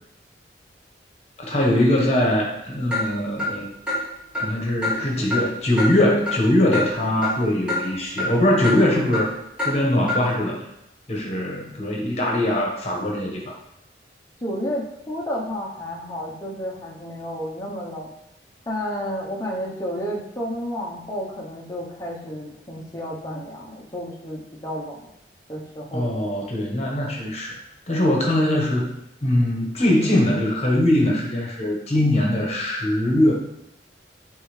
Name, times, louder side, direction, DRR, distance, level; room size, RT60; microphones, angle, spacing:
voice 1, 1.4-3.7 4.4-9.3 9.6-10.6 11.1-13.5 25.9-27.5 27.9-28.9 29.2-33.3, left 1 dB, 35° left, -1 dB, 1.3 m, -21 dB
Clock, 2.9-3.0 3.4-3.5 3.9-4.0 4.3-4.5 4.8-4.9 5.3-5.4 5.8-5.9 6.3-6.4 6.7-6.9 7.2-7.3 7.7-7.8 8.2-8.3 8.6-8.8 9.1-9.2 9.6-9.7 10.1-10.2, left 2 dB, 5° right, 2.3 m, -24 dB
voice 2, 14.4-18.2 18.7-25.0 25.5-26.2, equal, 20° left, -3 dB, 0.9 m, -31 dB
8.7 x 3.6 x 3.3 m, 0.84 s
head